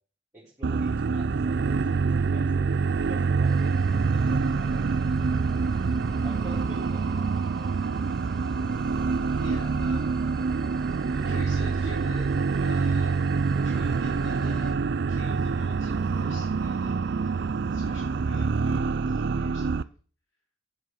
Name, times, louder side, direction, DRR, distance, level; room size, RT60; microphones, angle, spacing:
voice 1, 0.3-5.4 6.2-7.8, right 2 dB, 15° right, -8 dB, 4.0 m, -49 dB
sound 1, 0.6-19.8, right 4 dB, 55° right, 0.4 m, -26 dB
sound 2, 3.4-14.7, left 1 dB, 5° left, 1.1 m, -49 dB
voice 2, 9.4-10.4 10.9-13.2 13.6-17.3 17.7-19.9, left 2 dB, 65° left, -1 dB, 2.8 m, -46 dB
9.8 x 8.0 x 6.4 m, 0.41 s
head